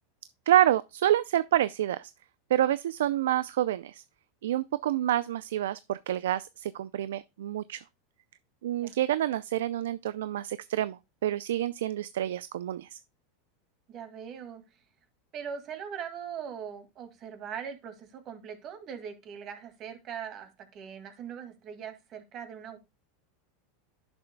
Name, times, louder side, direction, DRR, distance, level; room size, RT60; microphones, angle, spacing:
voice 1, 0.5-2.1 2.5-4.0 4.4-7.8 8.6-13.0, right 12 dB, 85° right, 0.4 m, -28 dB
voice 2, 13.9-14.8 15.3-22.8, right 7 dB, 40° right, 2.1 m, -41 dB
10.5 x 6.9 x 2.2 m
supercardioid pair, 125°, 0 cm